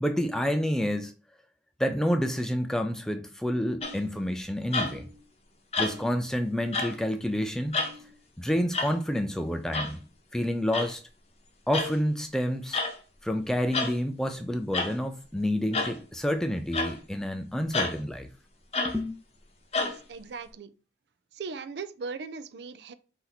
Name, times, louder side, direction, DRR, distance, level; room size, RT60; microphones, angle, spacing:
voice 1, 0.0-1.1 1.8-5.1 5.8-7.9 8.4-10.0 10.3-11.0 11.7-12.8 13.2-18.3 18.8-19.1, equal, 5° left, 0.3 m, -29 dB
sound 1, 3.8-4.1 4.7-5.1 5.7-6.2 6.7-7.0 7.7-8.0 8.7-8.9 9.7-9.9 10.7-10.9 11.7-12.0 12.7-13.0 13.7-14.0 14.7-14.9 15.7-16.0 16.7-17.0 17.7-18.0 18.7-19.0 19.7-20.0, left 3 dB, 35° left, 0.8 m, -29 dB
voice 2, 19.8-20.7 21.3-22.9, right 4 dB, 70° right, 0.4 m, -39 dB
4.4 x 2.7 x 4.0 m
head